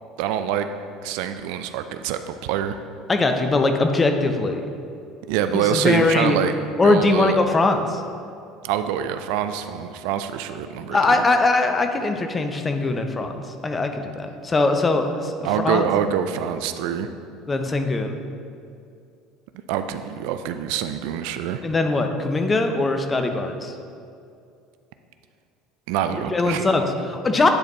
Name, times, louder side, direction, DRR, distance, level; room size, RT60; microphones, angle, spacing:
voice 1, 0.2-0.7 1.0-2.8 5.3-6.5 6.8-7.4 8.6-11.3 15.4-17.1 19.7-21.6 25.9-26.7, right 9 dB, 65° right, 9 dB, 0.3 m, -25 dB
voice 2, 3.1-4.7 5.5-6.4 6.8-8.0 10.9-15.9 17.5-18.2 21.6-23.7 26.1-27.5, left 3 dB, 25° left, 6 dB, 0.7 m, -21 dB
9.7 x 4.2 x 3.1 m, 2.4 s
hypercardioid pair, 70°, 0 cm